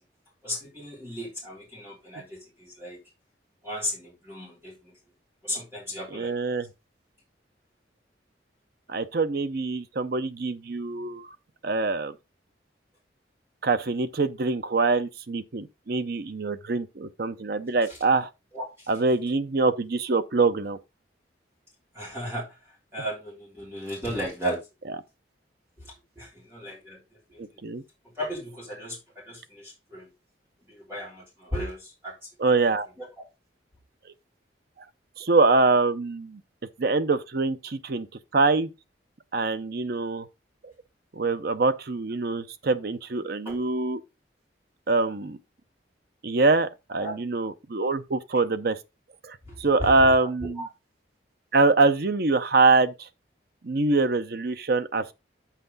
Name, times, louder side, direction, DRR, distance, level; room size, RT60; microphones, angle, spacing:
voice 1, 0.4-3.0 3.6-4.9 5.4-6.5 17.9-18.0 18.5-18.9 21.9-22.6 22.9-24.6 25.8-27.4 28.1-30.1 30.7-32.2 33.0-33.1 43.4-43.6 47.0-47.2 49.4-50.3 50.6-50.7, equal, 15° right, 3.4 m, -35 dB
voice 2, 6.1-6.7 8.9-11.3 11.6-12.1 13.6-18.3 18.9-20.8 27.4-27.8 32.4-32.9 35.2-36.4 36.8-38.1 38.3-38.7 39.3-40.3 40.6-40.7 41.1-44.0 44.9-45.4 46.2-48.8 49.2-50.6 51.5-53.1 53.6-55.1, right 3 dB, 55° right, 0.6 m, -24 dB
8.8 x 5.8 x 4.0 m
head